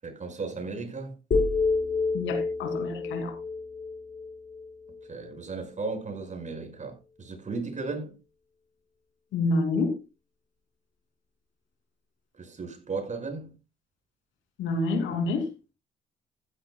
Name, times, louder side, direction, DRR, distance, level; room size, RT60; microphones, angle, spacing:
voice 1, 0.0-1.2 5.1-8.2 12.4-13.5, right 4 dB, 40° right, 5.6 m, -35 dB
sound 1, 1.3-5.4, left 4 dB, 50° left, 4.3 m, -29 dB
voice 2, 2.1-3.3 9.3-9.9 14.6-15.5, left 2 dB, 80° left, 2.9 m, -27 dB
15.5 x 11.5 x 2.3 m
supercardioid pair, 75°, 20 cm